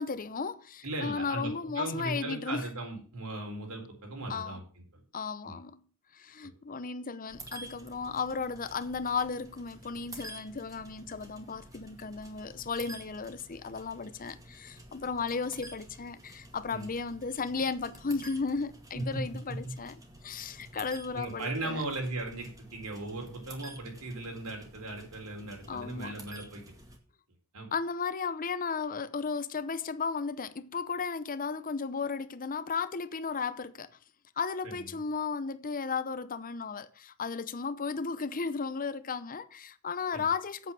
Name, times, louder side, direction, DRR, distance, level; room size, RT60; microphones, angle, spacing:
voice 1, 0.0-2.7 4.3-4.6 5.1-5.8 6.1-19.9 20.2-21.8 25.7-26.2 27.7-34.0 34.4-40.7, left 5 dB, 40° left, 0.7 m, -35 dB
voice 2, 0.8-4.6 4.9-5.0 5.4-5.6 6.4-6.5 16.7-16.9 18.9-19.2 19.5-19.7 21.1-26.6 27.5-27.7 34.6-34.9 40.1-40.3, right 2 dB, 80° right, 3.9 m, -37 dB
sound 1, 7.3-27.0, right 1 dB, 15° right, 2.1 m, -50 dB
8.3 x 8.1 x 7.5 m
head